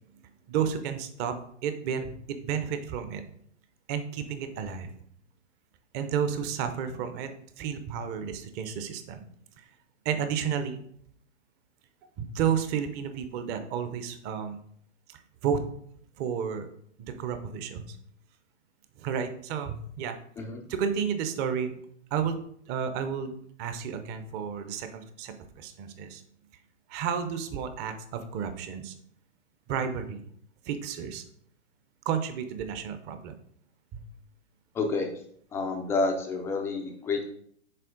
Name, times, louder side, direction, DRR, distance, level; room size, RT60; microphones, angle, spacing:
voice 1, 0.5-1.3 1.6-3.2 3.9-4.9 5.9-7.3 7.6-9.2 10.0-10.8 12.2-14.6 15.1-15.6 16.2-16.7 17.0-18.0 19.0-20.2 20.7-21.8 22.1-22.4 22.7-23.3 23.6-26.2 26.9-28.9 29.7-30.2 30.7-31.2 32.1-33.3 33.9-34.0, right 7 dB, 30° right, 9 dB, 0.7 m, -31 dB
voice 2, 34.7-35.1 35.5-37.3, left 3 dB, 10° left, 2 dB, 0.3 m, -29 dB
6.7 x 4.2 x 3.7 m, 0.66 s
hypercardioid pair, 120°, 36 cm